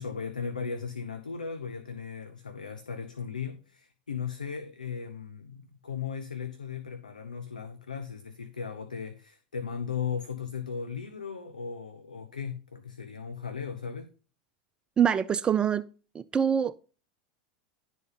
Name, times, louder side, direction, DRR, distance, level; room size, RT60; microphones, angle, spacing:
voice 1, 0.0-14.1, left 6 dB, 85° left, 0.7 m, -37 dB
voice 2, 15.0-15.9 16.1-16.7, right 8 dB, 20° right, 0.3 m, -25 dB
11.0 x 4.1 x 5.5 m
figure-of-eight pair, 85°, 4 cm